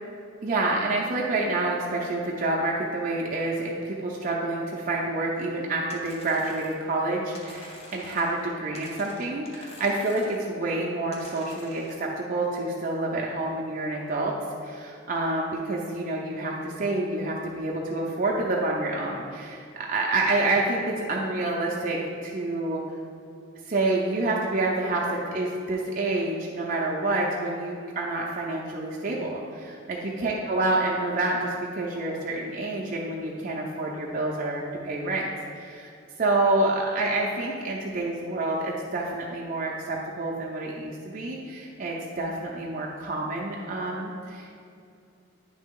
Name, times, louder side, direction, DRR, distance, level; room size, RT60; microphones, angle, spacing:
voice 1, 0.4-14.3 14.6-22.8 23.7-35.3 35.6-35.9 36.2-44.5, right 2 dB, 40° right, -3 dB, 0.5 m, -28 dB
sound 1, 5.9-6.9 7.3-8.5 8.7-10.5 11.1-12.0, left 1 dB, 30° left, 0.7 m, -47 dB
9.7 x 3.3 x 3.7 m, 2.5 s
head